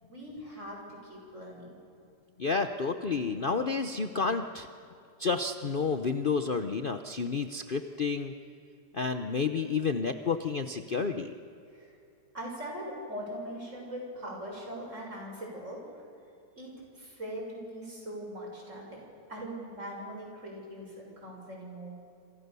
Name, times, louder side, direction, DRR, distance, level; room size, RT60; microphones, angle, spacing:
voice 1, 0.1-1.8 11.7-11.9 12.3-15.8 16.6-19.0 19.3-22.0, equal, 45° right, -1 dB, 7.0 m, -41 dB
voice 2, 2.4-4.7 5.2-8.3 8.9-11.3, left 4 dB, 40° left, 8 dB, 0.9 m, -30 dB
28.0 x 26.5 x 6.9 m, 2.7 s
omnidirectional pair, 1.7 m